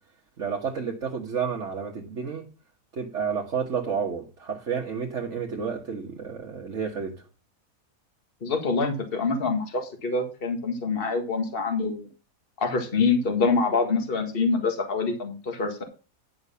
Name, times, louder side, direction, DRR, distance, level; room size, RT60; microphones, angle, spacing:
voice 1, 0.4-2.4 2.9-7.1, right 6 dB, 50° right, 1.7 m, -30 dB
voice 2, 8.4-12.0 12.6-15.8, left 4 dB, 35° left, 1.9 m, -25 dB
10.5 x 6.7 x 5.6 m
omnidirectional pair, 1.7 m